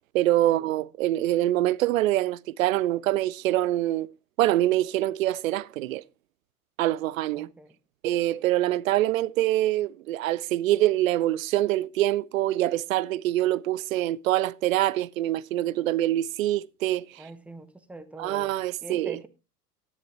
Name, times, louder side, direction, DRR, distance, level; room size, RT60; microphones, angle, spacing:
voice 1, 0.1-4.1 4.4-6.0 6.8-7.5 8.0-17.2 18.2-19.2, right 14 dB, 60° right, 0.5 m, -25 dB
voice 2, 7.3-7.8 17.2-18.6 18.8-19.3, right 2 dB, 5° right, 0.7 m, -43 dB
14.0 x 10.0 x 2.9 m
figure-of-eight pair, 85°, 46 cm